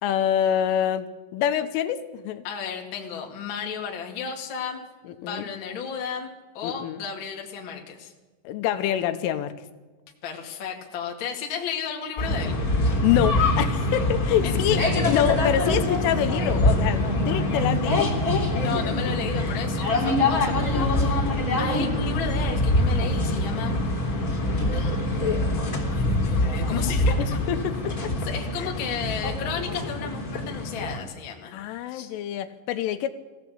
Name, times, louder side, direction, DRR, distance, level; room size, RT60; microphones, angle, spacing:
voice 1, 0.0-2.4 5.2-5.5 6.6-7.0 8.4-9.5 13.0-18.1 27.5-28.1 28.6-28.7 31.5-33.1, left 10 dB, 80° left, 9 dB, 3.3 m, -26 dB
voice 2, 2.4-4.8 5.2-8.1 10.2-12.6 14.4-15.3 18.5-23.8 24.7-25.2 25.9-27.4 28.2-32.1, left 7 dB, 45° left, 1 dB, 1.6 m, -34 dB
sound 1, 12.2-31.0, left 1 dB, 20° left, 3.4 m, -24 dB
20.0 x 16.0 x 8.4 m, 1.2 s
omnidirectional pair, 5.9 m